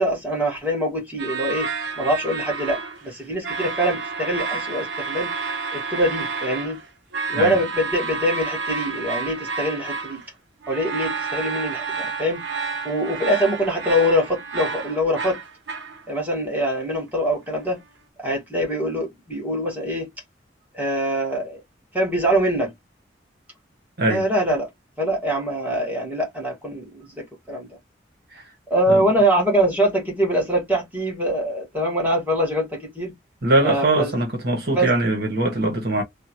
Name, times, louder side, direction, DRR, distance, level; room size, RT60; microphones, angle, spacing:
voice 1, 0.0-1.7 2.0-5.3 5.7-6.8 7.3-10.2 10.7-12.4 12.8-15.4 16.1-17.8 18.2-20.0 20.7-21.6 21.9-22.7 24.1-24.7 25.0-26.8 27.2-27.7 28.7-33.1 33.6-34.1 34.8-34.9, equal, 10° right, 1.8 m, -23 dB
sound 1, 1.2-3.1 3.4-10.3 10.6-16.1, right 4 dB, 75° right, 0.9 m, -30 dB
voice 2, 33.4-36.0, right 2 dB, 60° right, 1.3 m, -21 dB
3.6 x 2.4 x 2.9 m
head